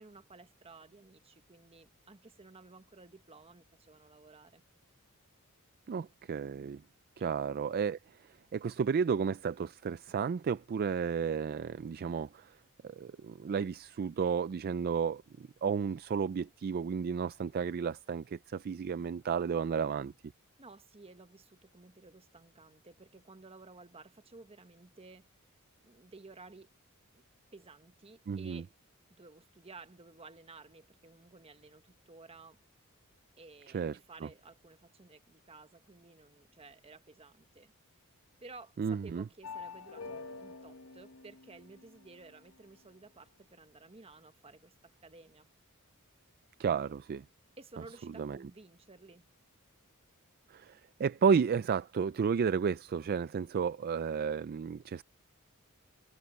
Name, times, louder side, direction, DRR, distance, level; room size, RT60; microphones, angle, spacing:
voice 1, 0.0-4.6 7.2-7.3 20.6-25.3 25.8-26.7 27.1-27.2 27.5-28.7 29.1-32.6 33.4-37.7 38.4-45.5 47.6-49.2, right 3 dB, 25° right, 1.2 m, -54 dB
voice 2, 5.9-6.8 7.2-8.0 8.5-12.5 12.8-20.1 28.3-28.6 33.7-34.3 38.8-39.2 46.6-47.2 48.2-48.4 50.5-55.0, right 6 dB, 45° right, 0.3 m, -32 dB
sound 1, 39.4-42.4, left 4 dB, 65° left, 1.4 m, -47 dB
head